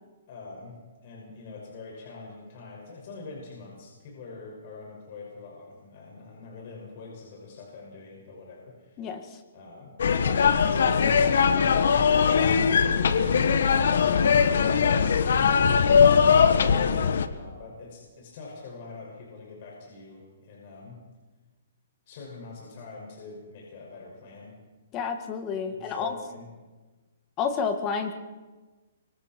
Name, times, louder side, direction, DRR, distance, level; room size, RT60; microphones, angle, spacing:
voice 1, 0.3-9.1 9.5-9.9 10.8-11.5 12.2-16.6 17.3-21.0 22.1-24.6 25.7-26.5, left 4 dB, 45° left, -2 dB, 6.2 m, -44 dB
voice 2, 9.0-9.4 24.9-26.1 27.4-28.1, left 6 dB, 25° left, 6 dB, 2.0 m, -30 dB
sound 1, 10.0-17.3, left 6 dB, 75° left, 1.4 m, -20 dB
25.5 x 24.5 x 4.6 m, 1.3 s
hypercardioid pair, 155°, 0 cm